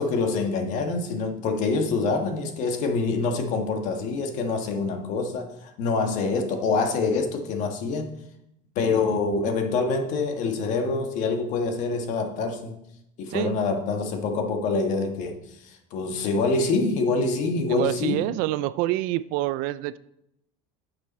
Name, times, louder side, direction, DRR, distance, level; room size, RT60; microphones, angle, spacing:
voice 1, 0.0-8.1 8.7-12.8 13.2-18.3, left 4 dB, 45° left, 5 dB, 1.5 m, -26 dB
voice 2, 17.7-20.0, right 15 dB, 55° right, 16 dB, 0.4 m, -26 dB
11.5 x 6.7 x 4.2 m, 0.81 s
cardioid pair, 155°, 17 cm